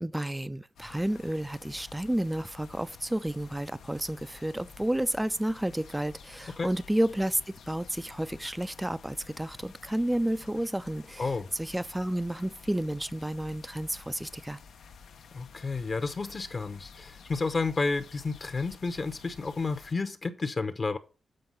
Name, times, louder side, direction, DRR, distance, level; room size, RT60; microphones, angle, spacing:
voice 1, 0.0-7.4 7.7-14.6, right 1 dB, 10° right, 0.4 m, -31 dB
sound 1, 0.8-19.9, left 6 dB, 80° left, 0.7 m, -51 dB
voice 2, 15.3-21.0, left 4 dB, 40° left, 0.8 m, -31 dB
7.7 x 4.5 x 5.5 m
cardioid pair, 90°, 0 cm